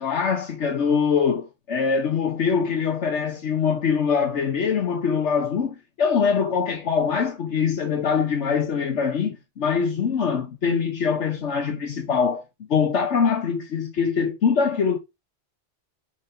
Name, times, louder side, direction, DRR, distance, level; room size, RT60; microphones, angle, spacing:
voice 1, 0.0-12.4 12.7-15.0, left 6 dB, 75° left, 1.3 m, -23 dB
6.3 x 5.3 x 5.7 m
omnidirectional pair, 1.2 m